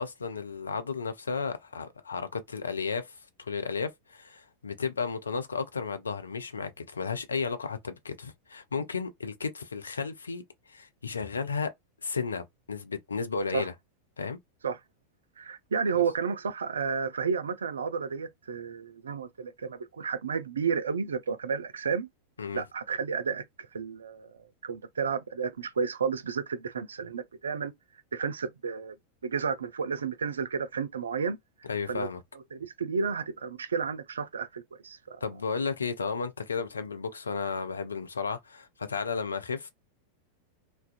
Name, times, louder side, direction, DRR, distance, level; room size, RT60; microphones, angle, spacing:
voice 1, 0.0-10.4 10.7-11.7 12.0-13.7 14.2-14.4 15.9-16.0 22.4-22.6 31.7-32.2 35.2-39.7, left 5 dB, 75° left, 0.4 m, -33 dB
voice 2, 15.4-22.1 22.5-27.7 28.1-28.9 29.2-31.4 31.9-32.1 32.5-35.2, right 6 dB, 70° right, 0.3 m, -32 dB
2.4 x 2.2 x 2.4 m
figure-of-eight pair, 90°, 0 cm